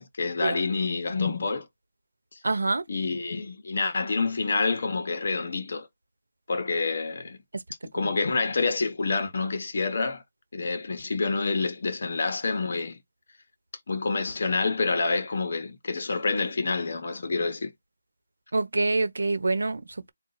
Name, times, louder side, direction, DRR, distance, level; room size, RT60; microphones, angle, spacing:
voice 1, 0.0-1.7 2.9-5.9 6.5-7.4 7.9-10.2 10.5-13.0 13.9-17.7, left 3 dB, 35° left, 0.8 m, -27 dB
voice 2, 2.4-2.8 7.5-7.6 8.0-8.1 18.5-20.1, right 3 dB, 70° right, 1.0 m, -26 dB
4.3 x 2.3 x 3.9 m
figure-of-eight pair, 180°, 0 cm